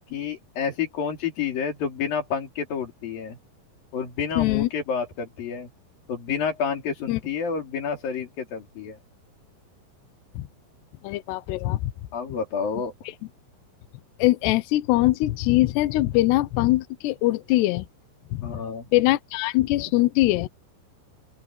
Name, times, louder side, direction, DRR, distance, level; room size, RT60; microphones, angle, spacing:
voice 1, 0.1-3.4 3.9-5.7 6.1-9.0 12.1-12.9 18.4-18.9, left 6 dB, 50° left, 5.0 m, -29 dB
voice 2, 4.4-4.7 7.1-7.2 10.3-10.5 11.0-11.9 14.2-17.9 18.3-18.6 18.9-20.5, left 17 dB, 75° left, 2.8 m, -22 dB
open air
omnidirectional pair, 5.5 m